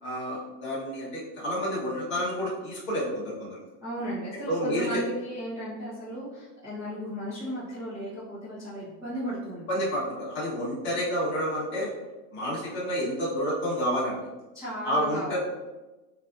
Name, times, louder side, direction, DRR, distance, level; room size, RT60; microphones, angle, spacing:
voice 1, 0.0-3.6 4.5-5.0 9.7-11.9 12.3-14.2 14.8-15.4, equal, 20° left, -7 dB, 1.3 m, -29 dB
voice 2, 3.8-9.6 14.5-15.4, equal, 5° right, -13 dB, 1.0 m, -35 dB
7.1 x 2.8 x 2.6 m, 1.1 s
supercardioid pair, 165°, 48 cm